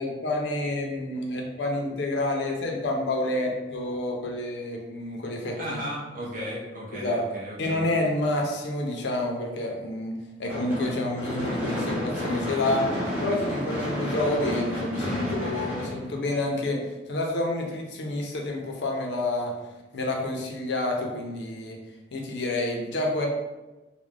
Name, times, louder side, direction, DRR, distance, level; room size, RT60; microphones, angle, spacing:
voice 1, 0.0-5.8 7.0-7.3 7.6-12.9 13.2-16.8 17.1-19.5 19.9-21.8 22.1-23.3, left 2 dB, 70° left, 1 dB, 0.5 m, -28 dB
voice 2, 5.6-7.9, equal, 45° right, -5 dB, 0.7 m, -35 dB
Gunshot gunfire / Fireworks, 10.5-16.7, equal, 10° right, 0.7 m, -31 dB
2.4 x 2.0 x 3.1 m, 1.1 s
head